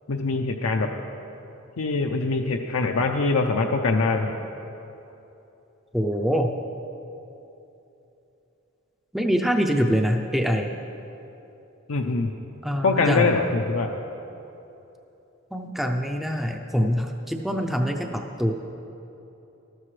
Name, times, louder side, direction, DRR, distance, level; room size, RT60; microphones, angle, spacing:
voice 1, 0.1-0.9 1.8-4.3 11.9-12.3 12.8-13.9, left 3 dB, 80° left, 2 dB, 0.6 m, -23 dB
voice 2, 5.9-6.5 9.1-10.7 12.6-13.3 15.5-18.5, equal, ahead, 3 dB, 0.5 m, -24 dB
13.5 x 13.0 x 3.2 m, 3.0 s
head